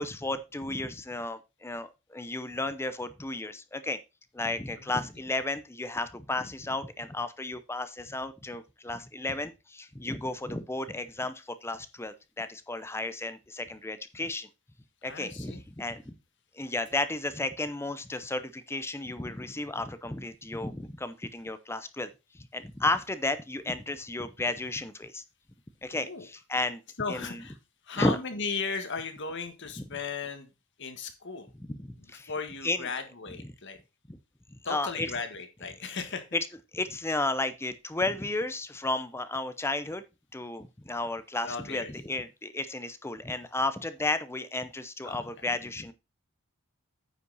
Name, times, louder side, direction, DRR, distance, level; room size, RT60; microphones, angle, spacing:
voice 1, 0.0-4.0 4.3-14.5 15.0-16.2 16.5-25.2 25.8-26.8 27.1-27.4 28.0-28.2 29.8-29.9 31.7-32.3 32.6-32.9 33.4-33.5 34.1-34.2 34.5-35.1 36.7-40.0 40.3-45.9, left 2 dB, 10° left, 12 dB, 0.6 m, -33 dB
voice 2, 15.0-15.6 25.9-26.3 27.0-27.6 27.8-30.5 30.8-31.5 32.0-33.8 34.6-36.2 41.4-41.9 45.0-45.2, left 5 dB, 55° left, 7 dB, 1.6 m, -36 dB
9.4 x 5.7 x 4.0 m, 0.26 s
head